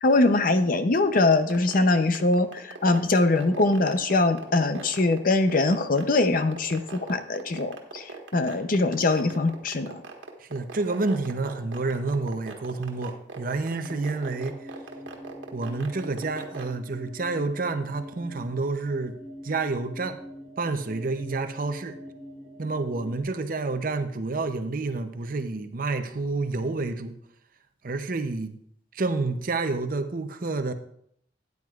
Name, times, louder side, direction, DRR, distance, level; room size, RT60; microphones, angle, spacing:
voice 1, 0.0-10.0, left 2 dB, 45° left, 9 dB, 0.6 m, -23 dB
sound 1, 1.0-16.6, right 3 dB, 75° right, 1.5 m, -39 dB
voice 2, 10.4-14.7 15.5-19.2 19.4-20.2 20.6-21.9 22.6-27.1 27.8-28.6 28.9-30.7, right 3 dB, 45° right, 9 dB, 0.6 m, -29 dB
sound 2, 13.8-23.2, equal, 25° left, 1.9 m, -44 dB
13.5 x 9.5 x 2.4 m, 0.68 s
head